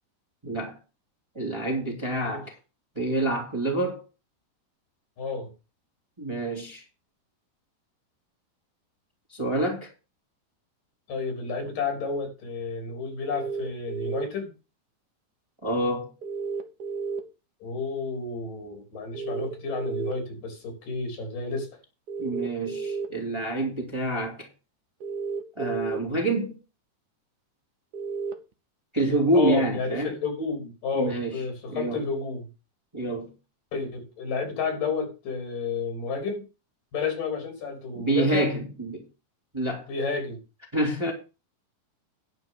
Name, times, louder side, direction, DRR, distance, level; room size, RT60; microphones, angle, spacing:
voice 1, 0.4-0.8 1.3-2.5 2.9-4.0 6.2-6.8 9.3-9.9 15.6-16.1 22.2-24.5 25.6-26.5 28.9-30.1 30.9-31.4 31.7-32.0 32.9-33.3 37.9-39.0 39.5-39.9 40.7-41.1, right 1 dB, 10° right, 2.5 m, -27 dB
voice 2, 5.2-5.5 11.1-14.5 17.6-21.7 29.3-32.5 33.7-36.4 36.9-38.5 39.9-40.4, left 4 dB, 75° left, 5.1 m, -31 dB
sound 1, 13.3-14.3 16.2-17.2 19.1-20.1 22.1-23.1 25.0-26.0 27.9-28.3, right 5 dB, 80° right, 0.9 m, -32 dB
10.5 x 5.5 x 7.4 m
omnidirectional pair, 3.8 m